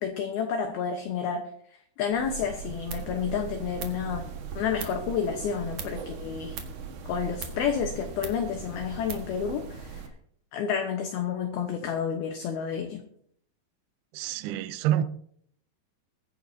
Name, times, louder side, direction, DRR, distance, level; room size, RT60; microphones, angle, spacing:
voice 1, 0.0-1.4 2.0-4.2 4.6-6.6 7.1-10.0 10.5-13.0, left 7 dB, 70° left, 4 dB, 2.6 m, -30 dB
sound 1, 2.1-10.1, right 7 dB, 60° right, 2.3 m, -38 dB
voice 2, 14.1-15.0, right 11 dB, 80° right, 12 dB, 2.4 m, -27 dB
22.0 x 10.0 x 2.8 m, 0.64 s
omnidirectional pair, 5.3 m